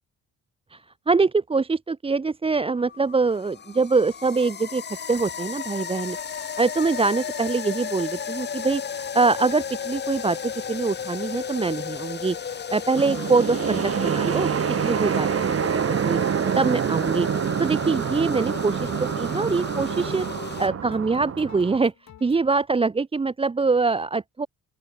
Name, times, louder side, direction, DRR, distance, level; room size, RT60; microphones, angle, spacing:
voice 1, 0.7-4.8 5.1-10.4 10.7-16.2 16.6-17.3 17.6-20.3 20.6-21.9 22.2-24.5, right 4 dB, 20° right, 0.7 m, -24 dB
sound 1, 2.8-20.7, left 7 dB, 35° left, 1.0 m, -34 dB
sound 2, 13.0-21.8, right 8 dB, 50° right, 2.4 m, -26 dB
sound 3, 16.8-22.4, left 10 dB, 65° left, 5.0 m, -49 dB
open air
cardioid pair, 90°, 30 cm